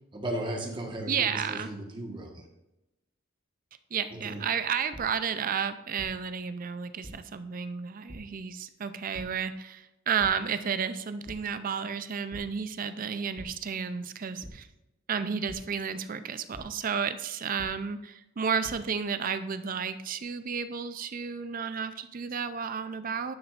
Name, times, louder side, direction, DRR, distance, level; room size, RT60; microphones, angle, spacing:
voice 1, 0.1-2.4 4.2-4.4, right 1 dB, 25° right, 1 dB, 1.4 m, -35 dB
voice 2, 1.1-1.7 3.9-14.7 15.1-23.3, right 6 dB, 45° right, 11 dB, 0.4 m, -32 dB
sound 1, 4.9-5.0 6.0-6.1 7.0-7.1 8.1-8.2 9.1-9.2 10.2-10.3 10.7-10.9 11.2-11.4 12.3-12.4 13.4-13.5 14.4-14.5 15.5-15.6 16.5-16.6 17.6-17.7 18.4-18.7, equal, 5° left, 1.1 m, -43 dB
10.5 x 6.2 x 2.5 m, 0.94 s
head